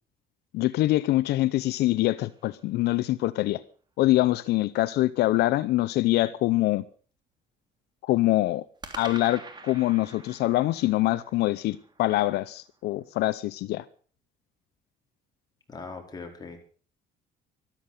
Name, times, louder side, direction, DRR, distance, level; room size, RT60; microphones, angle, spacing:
voice 1, 0.5-3.6 4.0-6.8 8.0-8.6 9.0-13.8, left 17 dB, 80° left, 0.7 m, -24 dB
sound 1, 1.1-3.0 8.8-13.1, right 3 dB, 25° right, 2.9 m, -47 dB
voice 2, 15.7-16.6, left 4 dB, 25° left, 4.6 m, -40 dB
13.5 x 13.0 x 6.7 m
cardioid pair, 110°, 17 cm